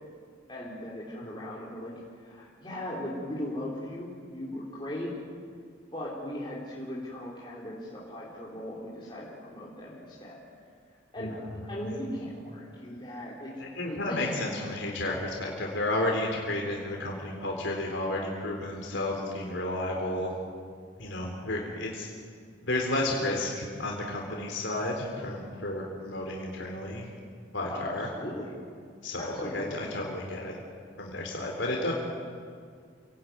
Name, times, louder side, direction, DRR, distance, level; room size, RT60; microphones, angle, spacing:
voice 1, 0.5-1.9 2.2-5.1 5.9-10.4 11.1-11.3 11.7-13.5 13.8-14.5 27.7-28.5 29.2-29.8, left 1 dB, 25° left, -6 dB, 4.0 m, -38 dB
voice 2, 11.2-11.6 11.9-12.0 13.6-20.3 21.0-22.1 22.6-27.1 27.5-28.1 29.0-30.6 31.0-31.9, left 1 dB, 70° left, -1 dB, 3.8 m, -32 dB
28.0 x 18.0 x 9.4 m, 2.1 s
head